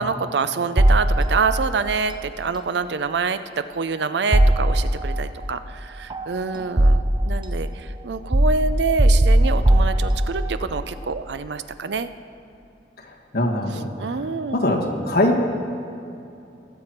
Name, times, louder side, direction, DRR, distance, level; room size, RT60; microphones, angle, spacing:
voice 1, 0.0-12.1 14.0-14.6, right 4 dB, 70° right, 12 dB, 0.5 m, -26 dB
sound 1, 0.8-1.7 4.3-5.2 6.1-7.4 8.3-10.6, right 1 dB, 25° right, 0.7 m, -18 dB
voice 2, 13.3-13.9 14.5-15.4, left 1 dB, 60° left, 1 dB, 1.6 m, -21 dB
22.0 x 7.7 x 4.5 m, 2.8 s
head